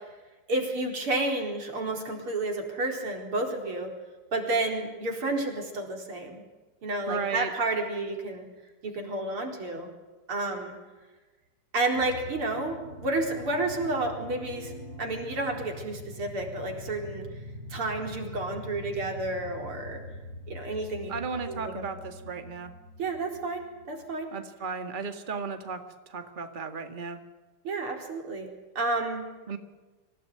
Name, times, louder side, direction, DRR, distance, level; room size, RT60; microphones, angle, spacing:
voice 1, 0.5-3.9 4.3-6.4 6.8-8.5 8.8-9.9 10.3-10.8 11.7-12.8 13.0-14.7 15.0-17.3 17.7-20.0 20.5-21.1 21.5-21.8 23.0-23.6 23.9-24.3 27.6-28.5 28.7-29.3, right 2 dB, 85° right, 3 dB, 5.1 m, -30 dB
voice 2, 7.1-7.5 21.1-22.7 24.3-25.8 26.1-27.2 29.5-29.6, right 5 dB, 25° right, 7 dB, 1.9 m, -34 dB
sound 1, 11.9-24.1, left 1 dB, 45° left, 6.6 m, -43 dB
25.5 x 17.0 x 9.5 m, 1.2 s
omnidirectional pair, 2.3 m